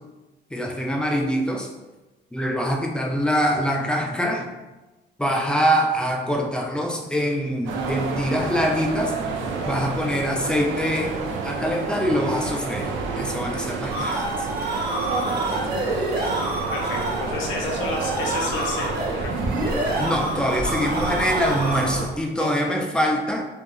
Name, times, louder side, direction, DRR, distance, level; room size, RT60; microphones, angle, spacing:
voice 1, 0.5-1.7 2.3-4.5 5.2-9.1 9.7-12.9 13.2-14.5 20.0-23.5, equal, 5° left, 1 dB, 0.3 m, -24 dB
sound 1, 7.7-22.1, right 4 dB, 80° right, 0.4 m, -29 dB
sound 2, 13.9-22.1, right 1 dB, 50° right, 0.9 m, -28 dB
voice 2, 16.7-19.3 22.4-22.7, left 3 dB, 75° left, 0 dB, 0.6 m, -31 dB
2.7 x 2.3 x 2.3 m, 1.1 s
cardioid pair, 90°, 20 cm